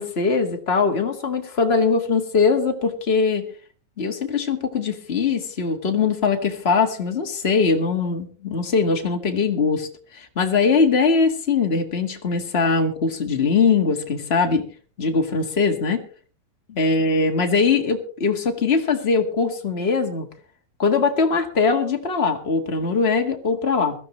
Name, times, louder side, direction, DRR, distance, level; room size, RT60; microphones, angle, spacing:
voice 1, 0.0-3.4 4.0-9.9 10.1-14.6 15.0-16.0 16.7-20.3 20.8-23.9, left 4 dB, 35° left, 4 dB, 0.9 m, -21 dB
21.5 x 14.5 x 3.1 m, 0.40 s
omnidirectional pair, 4.0 m